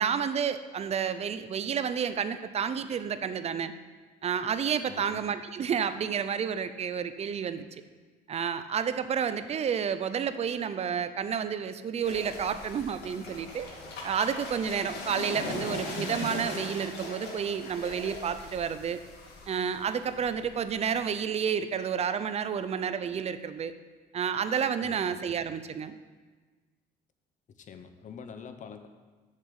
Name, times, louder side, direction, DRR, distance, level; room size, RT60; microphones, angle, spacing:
voice 1, 0.0-3.7 4.2-7.8 8.3-13.7 14.0-19.0 19.5-23.7 24.1-26.0, right 7 dB, 40° right, 12 dB, 0.6 m, -30 dB
voice 2, 4.9-5.2 24.8-25.1 27.6-28.9, left 6 dB, 45° left, 8 dB, 0.9 m, -45 dB
sound 1, 12.0-20.9, left 2 dB, 75° left, 2.3 m, -39 dB
7.2 x 6.6 x 7.9 m, 1.4 s
cardioid pair, 110°, 17 cm